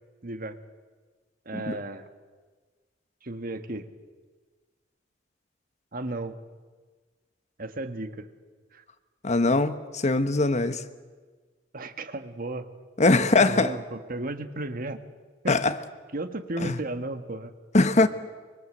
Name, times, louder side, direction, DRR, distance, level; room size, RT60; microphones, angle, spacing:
voice 1, 0.2-0.6 1.4-2.1 3.2-3.9 5.9-6.4 7.6-8.3 8.7-8.8 11.7-12.7 13.4-15.0 15.4-15.6 16.1-17.5, right 2 dB, 50° right, 1.6 m, -34 dB
voice 2, 9.2-10.8 13.0-13.7 15.5-15.8 16.6-16.8 17.7-18.1, left 3 dB, 40° left, 1.1 m, -22 dB
24.5 x 24.0 x 7.9 m
head